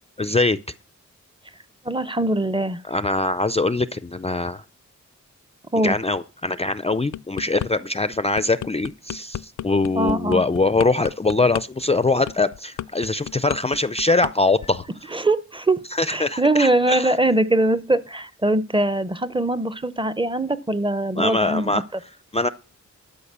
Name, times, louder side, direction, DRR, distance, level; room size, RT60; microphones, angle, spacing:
voice 1, 0.2-0.6 2.8-4.6 5.8-15.1 16.0-17.1 21.2-21.8 22.3-22.5, left 3 dB, 20° left, 0.4 m, -22 dB
voice 2, 1.8-2.8 5.7-6.0 10.0-10.4 15.1-15.8 16.1-21.8, right 2 dB, 15° right, 0.7 m, -22 dB
sound 1, 6.9-7.7 8.1-14.3 14.6-14.9, left 11 dB, 80° left, 0.5 m, -33 dB
12.5 x 5.3 x 6.7 m
wide cardioid pair, 95°, 30 cm